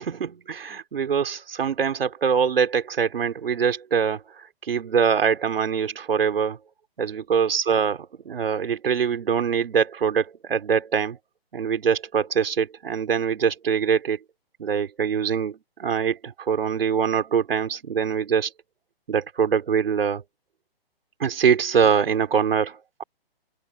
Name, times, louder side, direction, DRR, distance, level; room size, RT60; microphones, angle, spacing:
voice 1, 0.0-6.6 7.0-11.2 11.5-14.2 14.6-18.5 19.1-20.2 21.2-23.0, right 7 dB, 65° right, 3.7 m, -23 dB
open air
hypercardioid pair, 170°, 31 cm